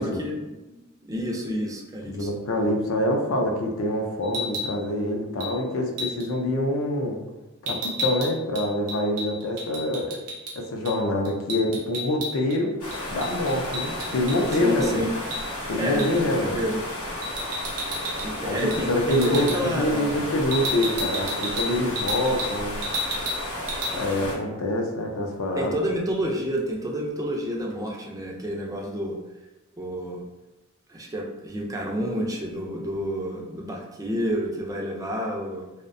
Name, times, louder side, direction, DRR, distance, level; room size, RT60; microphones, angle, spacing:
voice 1, 0.0-2.3 14.5-15.1 15.8-16.8 18.2-20.3 24.2-24.4 25.5-29.2 29.8-30.2 30.9-35.7, equal, 15° right, -1 dB, 0.3 m, -29 dB
voice 2, 2.1-7.2 7.6-10.2 10.6-12.8 13.1-15.1 15.7-16.6 18.4-22.8 23.9-25.7, left 1 dB, 65° left, 2 dB, 0.4 m, -25 dB
sound 1, 4.2-4.7 5.4-5.6 6.0-6.3 7.7-10.6 10.8-11.0 11.2-12.6 12.9-14.9 15.3-15.4 16.0-16.2 17.2-18.3 18.6-18.8 19.1-19.6 20.5-22.5 22.8-23.4 23.7-23.9, left 1 dB, 85° right, 0.6 m, -31 dB
sound 2, 12.8-24.3, left 1 dB, 85° left, 0.8 m, -33 dB
2.6 x 2.1 x 2.5 m, 1.1 s
head